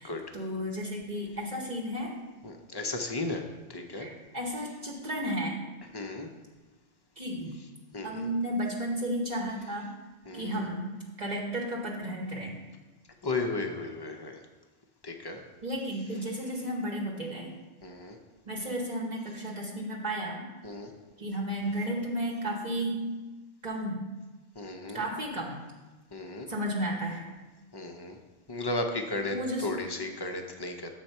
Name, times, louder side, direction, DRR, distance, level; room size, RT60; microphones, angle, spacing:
voice 1, 0.0-2.1 4.0-5.6 7.2-7.5 8.0-9.9 10.3-12.5 15.6-17.6 18.5-20.5 21.2-23.1 23.6-24.0 24.9-25.6 26.5-27.3 29.3-29.8, right 1 dB, 40° right, -1 dB, 1.0 m, -33 dB
voice 2, 2.4-3.4 3.7-4.1 5.9-6.3 7.9-8.3 10.3-10.6 13.2-14.4 15.0-15.4 17.8-18.2 20.6-20.9 24.6-25.0 26.1-26.5 27.7-28.2 28.5-29.4 29.6-30.9, left 2 dB, 30° left, 4 dB, 0.5 m, -34 dB
7.1 x 4.5 x 5.4 m, 1.2 s
omnidirectional pair, 1.1 m